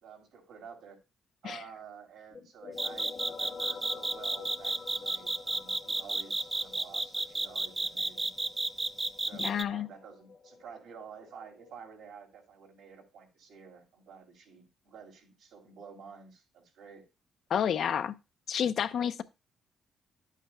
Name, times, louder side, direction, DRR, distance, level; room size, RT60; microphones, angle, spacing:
voice 1, 0.0-1.0 1.4-8.3 9.2-17.1, right 6 dB, 85° right, 2.7 m, -50 dB
sound 1, 2.3-11.7, left 5 dB, 40° left, 1.1 m, -48 dB
sound 2, 2.8-9.6, right 2 dB, 20° right, 0.5 m, -31 dB
voice 2, 9.4-9.9 17.5-18.1 18.5-19.2, left 8 dB, 65° left, 0.5 m, -30 dB
10.5 x 8.3 x 2.2 m
cardioid pair, 90°, 0 cm